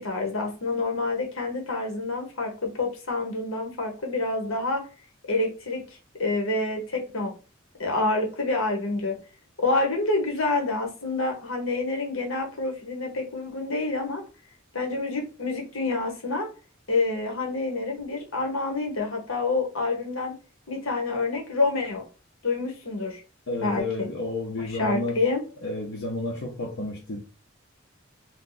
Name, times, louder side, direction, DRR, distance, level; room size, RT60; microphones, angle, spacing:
voice 1, 0.0-4.8 5.3-5.8 6.2-7.3 7.8-9.2 9.6-14.2 14.7-16.5 16.9-20.4 20.7-22.0 22.4-23.2 23.6-24.1 24.8-25.4, left 3 dB, 85° left, 1.2 m, -27 dB
voice 2, 23.5-25.2 25.6-27.2, left 2 dB, 65° left, 0.7 m, -31 dB
2.8 x 2.3 x 3.8 m
head